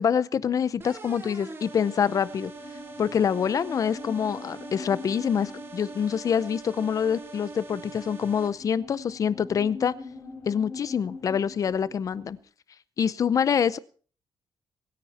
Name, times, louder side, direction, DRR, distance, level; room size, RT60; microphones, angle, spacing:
voice 1, 0.0-2.5 3.0-9.9 10.5-12.4 13.0-13.8, left 7 dB, 40° left, 18 dB, 0.6 m, -26 dB
sound 1, 0.8-8.5, right 3 dB, 25° right, 2.2 m, -42 dB
sound 2, 2.3-12.4, left 4 dB, 25° left, 3.5 m, -44 dB
24.5 x 10.0 x 4.2 m, 0.42 s
wide cardioid pair, 180°, 8 cm